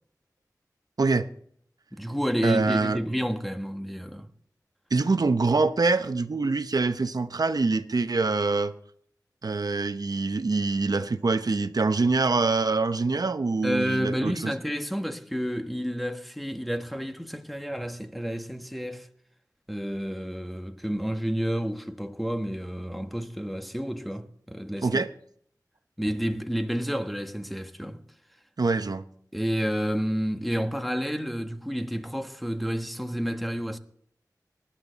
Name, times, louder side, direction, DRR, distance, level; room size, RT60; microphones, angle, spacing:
voice 1, 1.0-1.3 2.4-3.0 4.9-8.7 9.4-14.5 24.8-25.1 28.6-29.0, right 3 dB, 65° right, 0.8 m, -25 dB
voice 2, 1.9-4.3 13.6-19.1 19.7-25.0 26.0-28.0 29.3-33.8, equal, ahead, 1.2 m, -30 dB
19.5 x 11.5 x 4.1 m
wide cardioid pair, 75°, 7 cm